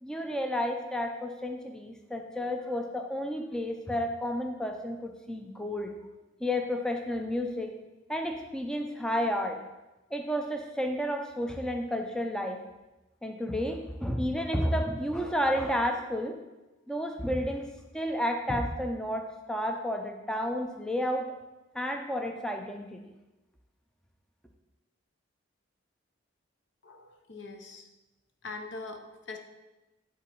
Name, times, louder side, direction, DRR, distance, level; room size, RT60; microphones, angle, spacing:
voice 1, 0.0-5.9 6.4-7.7 8.1-9.6 10.1-12.6 13.2-16.4 16.9-17.7 17.9-21.3 21.7-23.0, equal, 5° left, 3 dB, 0.4 m, -31 dB
voice 2, 26.8-27.9 28.4-29.4, left 3 dB, 65° left, 5 dB, 0.8 m, -42 dB
7.7 x 3.9 x 4.5 m, 1.1 s
head